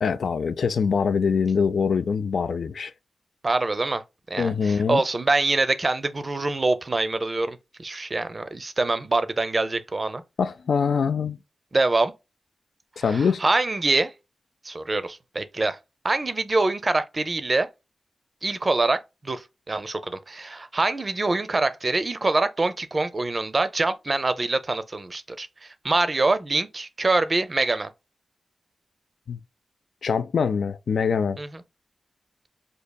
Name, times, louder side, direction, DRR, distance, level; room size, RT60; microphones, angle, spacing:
voice 1, 0.0-2.9 4.4-5.0 10.4-11.4 13.0-13.4 29.3-29.4 30.0-31.4, left 6 dB, 75° left, 0.3 m, -23 dB
voice 2, 3.4-4.0 4.3-10.2 11.7-12.1 13.1-14.1 14.6-15.8 16.0-17.7 18.4-27.9 31.4-31.6, right 2 dB, 30° right, 0.5 m, -25 dB
5.3 x 2.7 x 2.2 m
wide cardioid pair, 135°, 0 cm